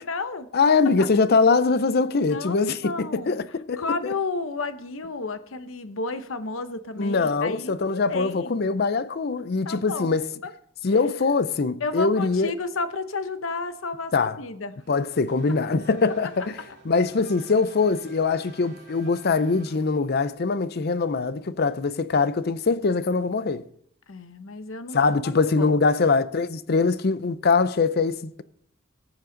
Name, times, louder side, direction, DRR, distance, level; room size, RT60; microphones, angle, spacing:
voice 1, 0.0-0.5 0.8-1.1 2.3-3.4 3.8-8.6 9.6-10.5 11.8-14.7 24.1-25.9, left 3 dB, 70° left, 0.9 m, -32 dB
voice 2, 0.5-3.8 7.0-10.3 10.8-12.5 14.1-14.4 14.9-16.6 16.9-23.6 24.9-28.4, left 4 dB, 50° left, 0.5 m, -22 dB
Race car auto racing / Accelerating revving vroom, 14.8-20.3, right 2 dB, 55° right, 3.2 m, -51 dB
19.0 x 7.2 x 3.9 m
head